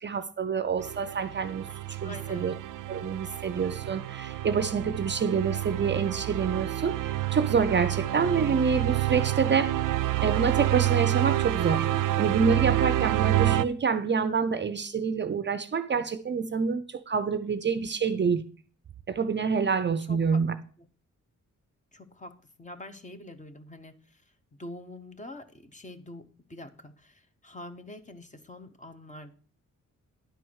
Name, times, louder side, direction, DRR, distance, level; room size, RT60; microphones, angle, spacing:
voice 1, 0.0-2.5 2.9-9.8 10.2-11.9 12.2-18.4 19.1-20.5, right 5 dB, 35° right, 0.5 m, -27 dB
sound 1, 0.8-13.6, right 15 dB, 85° right, 0.5 m, -28 dB
voice 2, 2.0-2.5 7.9-8.2 20.1-20.4 20.8-20.9 21.9-24.2 24.5-29.3, left 1 dB, 25° left, 0.9 m, -45 dB
10.5 x 4.5 x 6.3 m
wide cardioid pair, 135°, 31 cm